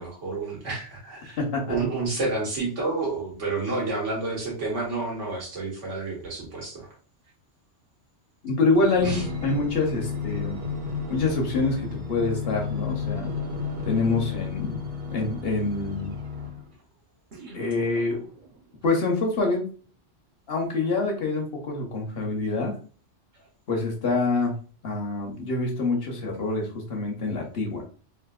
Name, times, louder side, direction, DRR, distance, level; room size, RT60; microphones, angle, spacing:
voice 1, 0.0-1.4 1.7-6.9 9.0-9.2, right 3 dB, 75° right, -3 dB, 1.6 m, -29 dB
voice 2, 1.4-1.8 8.4-10.6 11.1-13.3 13.8-14.8 15.1-16.1 17.5-18.2 18.8-19.7 20.5-22.7 23.7-24.5 24.8-27.9, left 3 dB, 60° left, 1 dB, 0.9 m, -26 dB
sound 1, 8.8-16.7 17.3-18.6 19.2-19.3, left 5 dB, 45° right, 0.9 m, -33 dB
3.5 x 2.6 x 2.3 m, 0.39 s
omnidirectional pair, 1.2 m